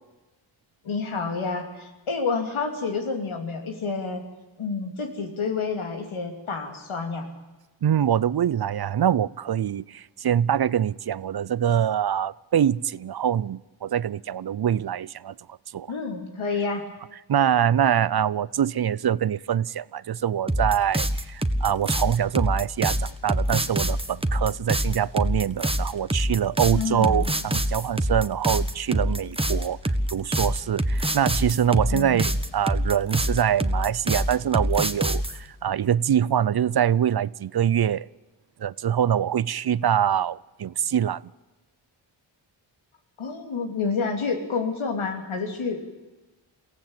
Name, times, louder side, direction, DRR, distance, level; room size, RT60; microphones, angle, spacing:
voice 1, 0.8-4.2 4.6-7.3 15.9-16.9 26.7-27.3 31.9-32.3 43.2-45.8, left 4 dB, 90° left, 3.0 m, -29 dB
voice 2, 7.8-15.3 15.7-15.9 17.3-29.8 30.1-38.1 38.6-41.2, right 9 dB, 55° right, 0.6 m, -24 dB
sound 1, 20.5-35.4, right 1 dB, 10° right, 1.4 m, -25 dB
23.0 x 16.0 x 8.9 m
cardioid pair, 50°, 47 cm